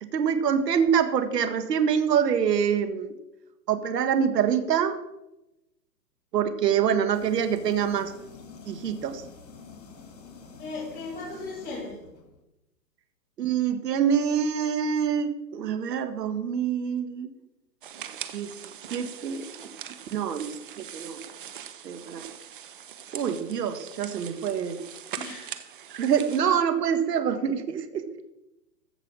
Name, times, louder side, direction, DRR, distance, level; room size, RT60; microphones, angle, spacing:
voice 1, 0.0-3.1 3.7-5.0 6.3-8.1 8.7-9.2 13.4-17.3 18.3-19.7 20.1-21.2 21.8-22.3 23.1-24.8 25.9-28.2, right 7 dB, 70° right, 9 dB, 1.6 m, -26 dB
sound 1, 7.1-12.4, left 5 dB, 75° left, 2.7 m, -47 dB
voice 2, 10.6-12.0 25.1-25.6, left 3 dB, 20° left, -7 dB, 4.1 m, -37 dB
sound 2, 17.8-26.4, right 9 dB, 35° right, 0.6 m, -42 dB
14.5 x 5.5 x 7.4 m, 0.92 s
hypercardioid pair, 160°, 50 cm